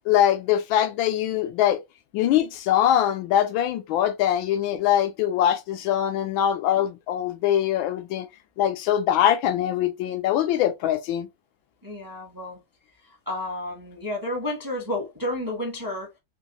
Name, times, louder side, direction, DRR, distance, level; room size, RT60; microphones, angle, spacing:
voice 1, 0.1-1.8 2.1-8.3 8.6-11.3, left 11 dB, 80° left, 1.4 m, -22 dB
voice 2, 11.8-12.6 13.3-16.1, left 1 dB, 15° right, 0.7 m, -31 dB
3.7 x 2.9 x 2.9 m
omnidirectional pair, 2.2 m